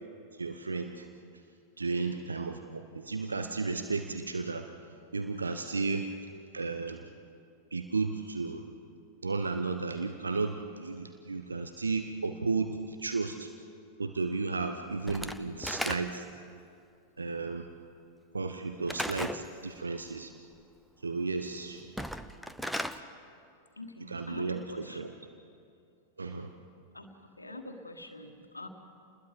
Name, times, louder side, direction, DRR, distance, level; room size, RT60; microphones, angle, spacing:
voice 1, 0.3-1.1 1.8-4.7 5.1-6.1 6.5-7.0 7.7-8.6 9.2-13.5 14.0-16.2 17.2-17.7 18.3-20.3 21.0-21.8 24.1-25.1 26.2-26.5, right 4 dB, 75° right, 7 dB, 1.0 m, -33 dB
voice 2, 1.9-2.3 23.8-25.0 26.9-28.7, left 2 dB, 80° left, 5 dB, 1.7 m, -45 dB
Slam / Wood, 15.1-16.4 18.9-19.5 21.8-23.0, equal, ahead, 0.9 m, -36 dB
29.5 x 20.5 x 5.3 m, 2.4 s
figure-of-eight pair, 90°, 0 cm